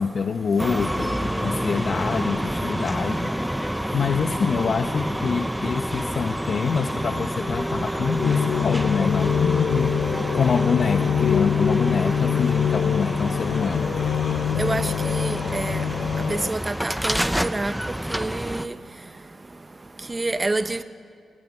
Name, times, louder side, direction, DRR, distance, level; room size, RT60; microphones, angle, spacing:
voice 1, 0.0-3.5 3.9-9.9 10.3-13.9, left 5 dB, 50° left, 7 dB, 1.0 m, -26 dB
sound 1, 0.6-18.7, equal, 5° right, 0.8 m, -28 dB
sound 2, 8.2-16.5, left 8 dB, 70° left, 0.7 m, -24 dB
voice 2, 14.6-15.8 16.3-17.7 18.1-18.7 20.1-20.8, right 2 dB, 20° right, 11 dB, 1.1 m, -27 dB
27.0 x 20.0 x 9.7 m, 2.3 s
cardioid pair, 115°, 0 cm